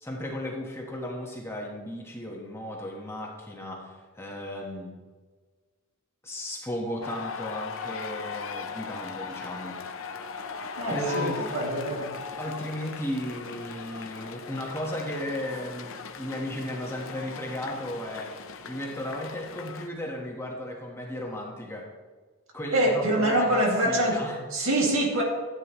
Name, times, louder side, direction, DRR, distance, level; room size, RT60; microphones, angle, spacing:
voice 1, 0.0-5.0 6.2-9.9 10.9-11.6 12.4-21.9 22.5-24.4, left 1 dB, 10° left, -1 dB, 1.4 m, -35 dB
sound 1, 7.0-19.9, left 5 dB, 60° left, 0.7 m, -38 dB
voice 2, 10.8-12.1 22.7-24.2 24.5-25.2, right 1 dB, 65° right, -1 dB, 2.4 m, -25 dB
13.5 x 9.3 x 3.1 m, 1.4 s
head